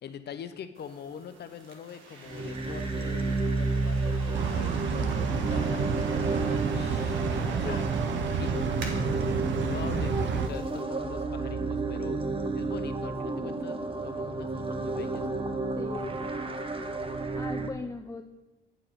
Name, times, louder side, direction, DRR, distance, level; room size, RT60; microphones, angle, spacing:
voice 1, 0.0-7.2 7.6-7.9 8.1-9.2 9.6-12.2 12.5-13.8 14.0-15.3, left 7 dB, 55° left, 10 dB, 0.7 m, -43 dB
sound 1, 0.7-10.8, right 3 dB, 85° right, 1.3 m, -47 dB
sound 2, 2.3-17.7, right 3 dB, 25° right, 0.8 m, -31 dB
sound 3, 4.3-10.5, right 6 dB, 70° right, 0.7 m, -30 dB
voice 2, 15.8-16.6 17.3-18.2, left 3 dB, 15° left, 4 dB, 0.4 m, -38 dB
9.0 x 4.8 x 5.6 m, 1.1 s
cardioid pair, 90°, 20 cm